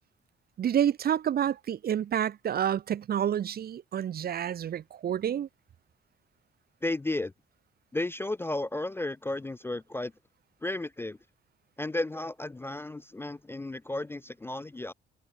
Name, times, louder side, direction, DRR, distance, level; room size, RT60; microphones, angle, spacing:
voice 1, 0.6-5.5, right 9 dB, 50° right, 0.8 m, -29 dB
voice 2, 6.8-7.3 7.9-10.1 10.6-11.2 11.8-14.9, left 2 dB, 10° left, 0.3 m, -33 dB
cardioid pair, 90°, 20 cm